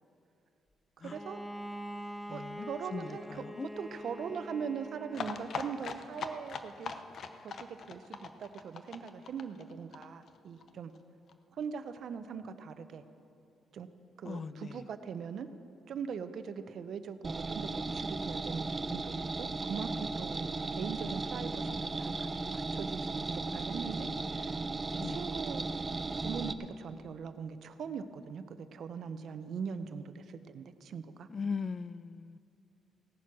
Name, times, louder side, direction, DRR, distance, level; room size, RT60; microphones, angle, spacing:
Bowed string instrument, 1.0-5.7, equal, 5° left, 0.8 m, -44 dB
voice 1, 1.0-1.4 2.3-7.0 7.4-10.9 11.5-13.0 13.7-13.9 14.2-15.5 15.9-23.1 23.3-24.6 25.0-25.6 26.2-31.3, right 6 dB, 65° right, 0.7 m, -41 dB
voice 2, 2.3-3.7 14.2-14.8 25.0-25.2 31.3-32.4, left 5 dB, 45° left, 0.3 m, -39 dB
sound 1, 5.1-10.7 11.0-11.1 11.3-11.4 11.6-11.7, left 5 dB, 60° left, 0.8 m, -41 dB
sound 2, 17.2-26.5, right 3 dB, 30° right, 0.6 m, -36 dB
17.0 x 9.3 x 6.1 m
cardioid pair, 80°, 0 cm